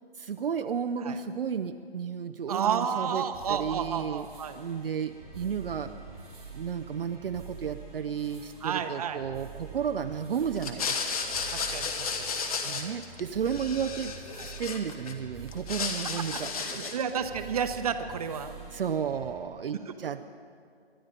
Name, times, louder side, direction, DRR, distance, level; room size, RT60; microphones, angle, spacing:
voice 1, 0.2-3.2 3.5-4.3 4.6-5.9 6.5-11.0 12.6-14.2 14.4-16.5 16.8-16.9 18.7-20.2, right 7 dB, 60° right, 7 dB, 0.6 m, -33 dB
voice 2, 2.5-4.6 8.6-9.2 11.5-12.1 14.4-14.5 16.3-18.5 19.7-20.0, right 7 dB, 35° right, 9 dB, 0.9 m, -31 dB
sound 1, 3.3-19.3, right 5 dB, 5° left, 0.4 m, -46 dB
sound 2, 10.6-13.2 13.4-15.1 15.5-17.1, left 5 dB, 35° left, 1.4 m, -33 dB
22.5 x 11.5 x 5.2 m, 2.2 s
hypercardioid pair, 155°, 32 cm